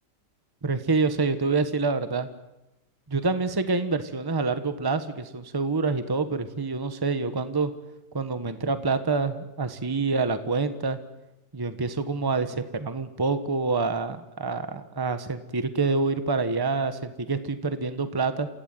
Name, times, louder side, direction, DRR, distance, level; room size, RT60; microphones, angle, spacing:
voice 1, 0.6-2.3 3.1-7.7 8.1-11.0 11.5-18.5, right 4 dB, 15° right, 10 dB, 1.2 m, -27 dB
28.5 x 16.0 x 9.2 m, 0.96 s
omnidirectional pair, 1.8 m